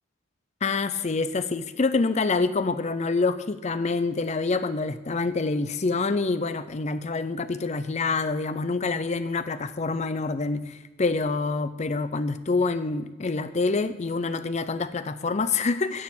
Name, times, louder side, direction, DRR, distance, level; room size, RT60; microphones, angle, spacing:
voice 1, 0.6-16.0, left 3 dB, 35° left, 12 dB, 0.5 m, -26 dB
10.0 x 4.8 x 8.0 m, 1.1 s
head